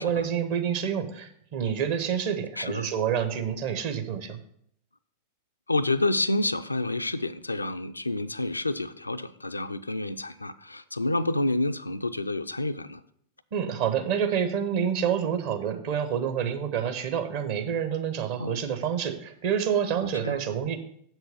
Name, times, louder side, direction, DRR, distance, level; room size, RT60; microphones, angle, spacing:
voice 1, 0.0-4.4 13.5-20.8, right 8 dB, 50° right, 1.0 m, -28 dB
voice 2, 2.6-2.9 5.7-13.0 18.4-18.6 20.2-20.4, left 2 dB, 80° left, 0.4 m, -29 dB
7.8 x 6.2 x 5.0 m
figure-of-eight pair, 90°, 0 cm